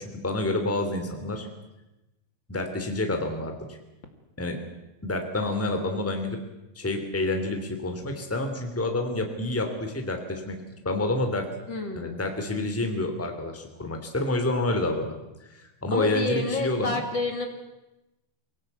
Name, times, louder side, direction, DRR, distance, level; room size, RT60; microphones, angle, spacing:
voice 1, 0.0-1.5 2.5-3.8 4.4-4.6 5.0-6.4 6.7-10.6 10.8-11.5 12.0-15.2 15.5-17.0, left 2 dB, 5° left, 5 dB, 2.0 m, -28 dB
voice 2, 11.7-12.2 15.9-17.5, left 3 dB, 35° left, 4 dB, 2.3 m, -29 dB
23.5 x 18.0 x 9.3 m, 1.0 s
omnidirectional pair, 4.9 m